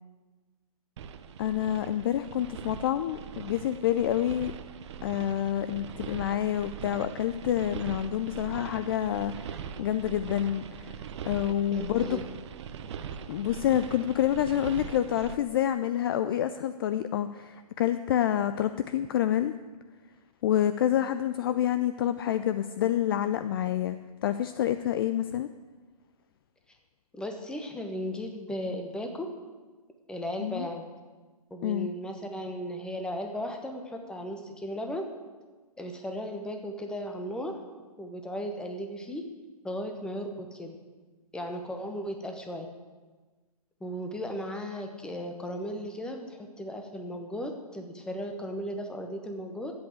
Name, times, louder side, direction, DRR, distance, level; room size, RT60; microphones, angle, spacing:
sound 1, 1.0-15.4, right 7 dB, 45° right, 0.8 m, -41 dB
voice 1, 1.4-4.5 5.0-11.0 11.2-12.2 13.3-19.5 20.4-24.0 24.2-25.5 30.4-30.7 31.6-31.9, left 11 dB, 35° left, 11 dB, 0.4 m, -28 dB
voice 2, 11.7-12.2 27.1-29.3 30.1-30.8 31.5-35.1 35.8-37.6 38.0-39.2 39.6-40.8 41.3-42.7 43.8-49.7, equal, 5° left, 4 dB, 1.1 m, -36 dB
11.0 x 8.2 x 7.9 m, 1.3 s
hypercardioid pair, 135°, 20 cm